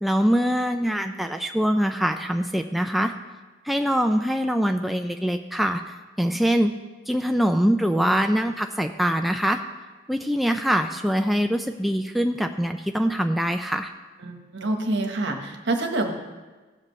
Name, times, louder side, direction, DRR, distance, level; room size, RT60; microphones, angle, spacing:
voice 1, 0.0-3.1 3.6-6.7 7.1-9.6 10.1-13.9, equal, ahead, 5 dB, 0.3 m, -23 dB
voice 2, 14.2-16.1, right 2 dB, 70° right, 3 dB, 1.3 m, -27 dB
16.5 x 7.5 x 3.2 m, 1.3 s
head